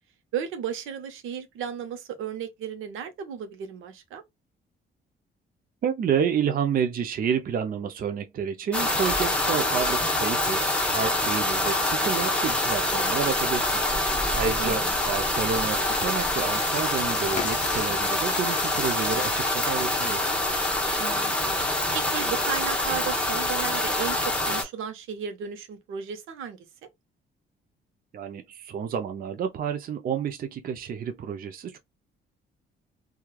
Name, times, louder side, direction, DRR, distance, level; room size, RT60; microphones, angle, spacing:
voice 1, 0.3-4.2 14.6-14.9 21.0-21.6 21.9-26.7, right 8 dB, 85° right, 0.7 m, -34 dB
voice 2, 5.8-13.8 14.1-20.2 28.1-31.8, right 7 dB, 45° right, 0.5 m, -29 dB
sound 1, 8.7-24.6, left 1 dB, 5° left, 0.9 m, -25 dB
sound 2, 11.4-11.5 11.9-13.5 14.9-20.3, left 6 dB, 40° left, 0.5 m, -40 dB
3.1 x 2.3 x 2.2 m
cardioid pair, 90°, 20 cm